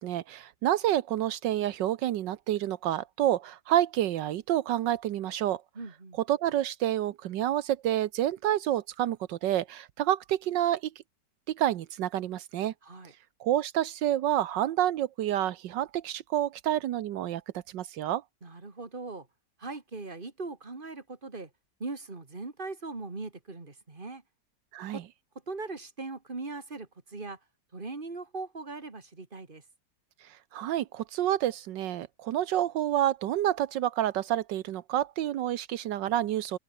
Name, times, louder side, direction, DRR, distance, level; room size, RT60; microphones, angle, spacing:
voice 1, 0.0-5.6 6.3-10.9 11.5-12.7 13.4-18.2 24.7-25.0 30.2-36.6, right 12 dB, 85° right, 1.5 m, -29 dB
voice 2, 5.7-6.2 12.8-13.1 18.4-19.3 19.6-21.5 21.8-24.2 24.9-25.1 25.5-27.4 27.7-29.6, right 3 dB, 30° right, 2.9 m, -40 dB
open air
omnidirectional pair, 1.9 m